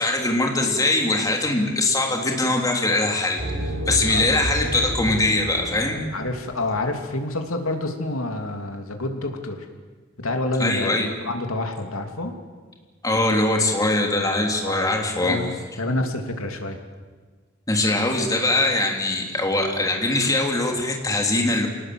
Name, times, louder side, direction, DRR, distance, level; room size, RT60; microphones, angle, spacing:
voice 1, 0.0-6.0 10.6-11.1 13.0-15.4 17.7-21.7, left 2 dB, 15° left, 1 dB, 3.2 m, -22 dB
sound 1, 3.4-6.8, equal, 70° right, 6.3 m, -30 dB
voice 2, 4.1-4.4 6.1-9.7 10.2-12.3 14.6-16.8, left 2 dB, 90° left, 4 dB, 2.9 m, -28 dB
27.0 x 18.5 x 7.8 m, 1.4 s
head